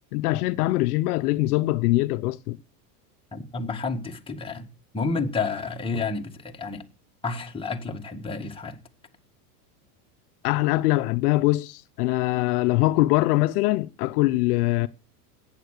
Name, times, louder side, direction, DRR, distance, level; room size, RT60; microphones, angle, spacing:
voice 1, 0.1-2.6 10.4-14.9, left 19 dB, 70° left, 0.8 m, -23 dB
voice 2, 3.3-6.8 7.2-8.8, left 4 dB, 10° left, 1.9 m, -30 dB
14.5 x 9.0 x 6.6 m
supercardioid pair, 120°, 47 cm